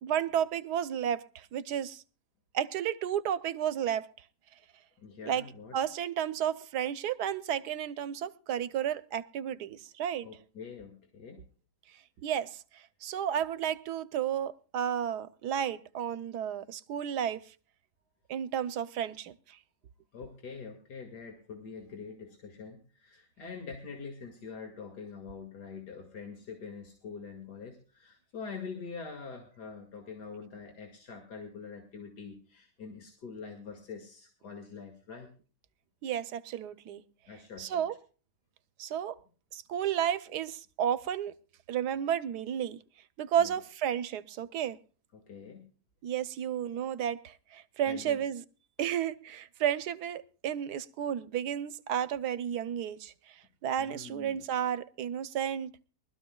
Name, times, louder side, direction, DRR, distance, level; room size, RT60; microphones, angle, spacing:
voice 1, 0.0-2.0 2.5-4.1 5.3-5.4 5.7-10.3 12.2-17.5 18.3-19.6 36.0-37.0 37.6-37.9 38.8-39.2 39.5-41.3 41.7-42.8 43.2-44.8 46.0-48.4 48.8-55.7, right 9 dB, 80° right, 1.3 m, -32 dB
voice 2, 5.0-5.8 10.2-11.4 20.1-35.3 37.3-37.8 43.4-43.6 45.1-45.6 47.8-48.2 48.8-48.9 53.8-54.4, left 5 dB, 90° left, 2.7 m, -45 dB
23.0 x 13.0 x 2.3 m
omnidirectional pair, 1.7 m